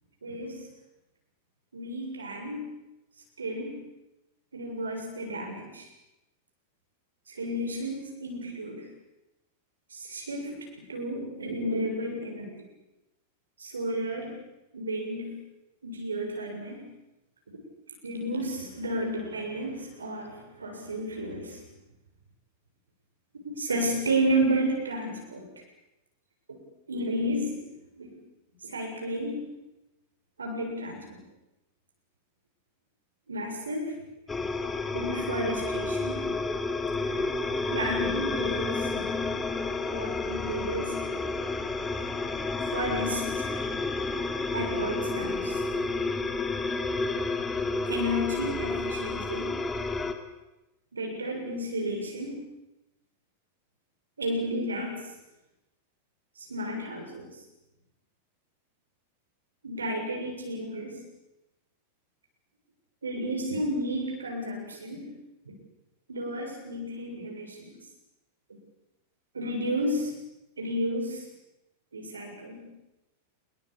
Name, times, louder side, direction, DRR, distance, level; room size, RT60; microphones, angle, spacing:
voice 1, 0.2-0.7 1.7-2.8 3.4-3.8 4.5-5.9 7.3-8.9 9.9-12.6 13.6-14.4 14.7-15.4 15.8-16.9 18.0-21.6 23.4-25.5 26.5-26.6 26.9-27.7 28.0-28.1 28.6-29.5 30.4-31.2 33.3-34.0 34.3-34.4 34.9-36.4 37.1-37.2 37.7-39.1 39.9-41.3 42.7-43.7 44.5-45.6 47.9-49.6 50.9-52.5 54.2-55.0 56.4-57.3 59.6-61.0 63.0-65.2 65.5-65.6 66.1-67.8 69.3-70.2 70.6-71.3 71.9-72.7, right 1 dB, 75° right, 2 dB, 7.1 m, -32 dB
sound 1, 34.3-50.1, left 3 dB, 15° left, 2.7 m, -30 dB
26.0 x 22.5 x 8.8 m, 0.96 s
figure-of-eight pair, 90°, 0 cm